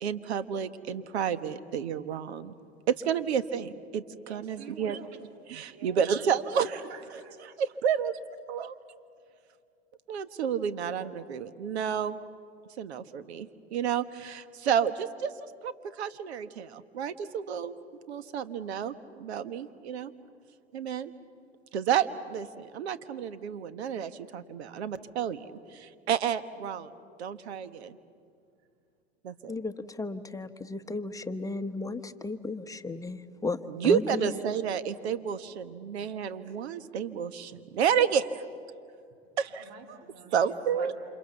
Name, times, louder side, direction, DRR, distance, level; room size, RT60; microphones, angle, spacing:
voice 1, 0.0-2.5 2.9-5.0 5.5-6.8 7.6-8.2 8.5-8.7 10.1-12.2 12.8-15.7 16.0-17.8 18.1-20.1 20.7-21.1 21.7-26.9 27.2-28.0 29.2-29.5 33.7-38.4 39.4-40.0 40.3-40.9, right 8 dB, 80° right, 12 dB, 1.4 m, -30 dB
voice 2, 4.3-5.1 5.7-6.0 6.8-7.6 8.6-8.7 34.8-35.1 36.4-36.6 39.5-40.9, right 5 dB, 55° right, 3 dB, 4.3 m, -49 dB
voice 3, 29.5-34.3, left 3 dB, 10° left, 9 dB, 1.1 m, -35 dB
28.5 x 27.0 x 7.1 m, 2.3 s
hypercardioid pair, 95°, 32 cm